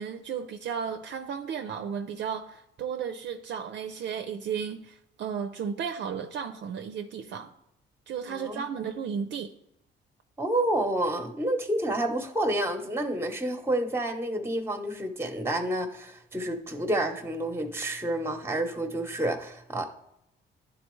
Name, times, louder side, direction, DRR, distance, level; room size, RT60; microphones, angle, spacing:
voice 1, 0.0-7.5 8.1-9.5, right 7 dB, 65° right, 0.5 m, -34 dB
voice 2, 8.3-8.6 10.4-19.9, right 1 dB, 10° right, 0.9 m, -29 dB
11.0 x 4.0 x 3.1 m
cardioid pair, 90°, 20 cm